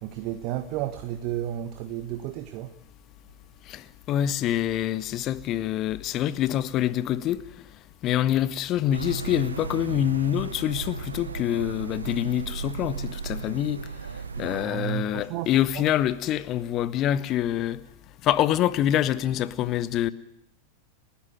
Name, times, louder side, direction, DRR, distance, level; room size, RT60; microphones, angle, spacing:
voice 1, 0.0-2.7 14.4-15.8, right 13 dB, 40° right, 1.5 m, -33 dB
voice 2, 3.7-7.4 8.0-13.8 14.4-17.8 18.2-20.1, left 11 dB, 35° left, 1.3 m, -26 dB
sound 1, 8.9-14.7, right 5 dB, 75° right, 1.5 m, -35 dB
30.0 x 13.0 x 9.4 m
figure-of-eight pair, 90°, 0 cm